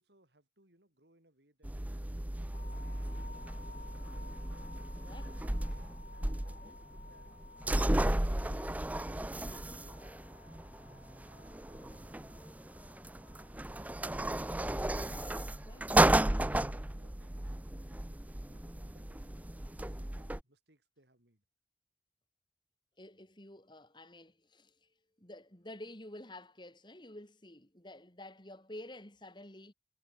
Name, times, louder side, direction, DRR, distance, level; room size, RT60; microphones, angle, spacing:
voice 1, 0.0-4.4 5.0-7.4 10.8-12.5 18.4-21.4, right 1 dB, 70° right, 6.1 m, -68 dB
sound 1, 1.6-20.4, right 1 dB, 10° right, 0.5 m, -34 dB
sound 2, 2.5-16.5, left 4 dB, 50° left, 2.5 m, -57 dB
voice 2, 4.9-5.3 6.6-6.8 15.0-15.9 23.0-29.7, left 1 dB, 25° left, 3.2 m, -50 dB
head